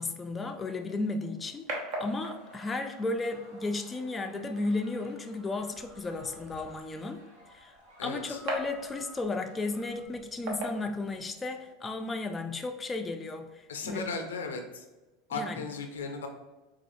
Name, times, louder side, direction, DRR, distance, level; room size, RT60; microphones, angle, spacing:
voice 1, 0.0-7.2 7.5-7.7 8.0-14.1 15.3-15.6, left 3 dB, 20° left, 6 dB, 0.3 m, -34 dB
sound 1, 0.7-11.7, right 1 dB, 60° right, 0.8 m, -43 dB
sound 2, 2.1-10.0, equal, 80° right, 1.1 m, -55 dB
voice 2, 8.0-8.4 13.7-14.9 15.3-16.3, left 4 dB, 85° left, 5 dB, 0.4 m, -36 dB
4.2 x 2.3 x 2.6 m, 1.1 s
hypercardioid pair, 85°, 0 cm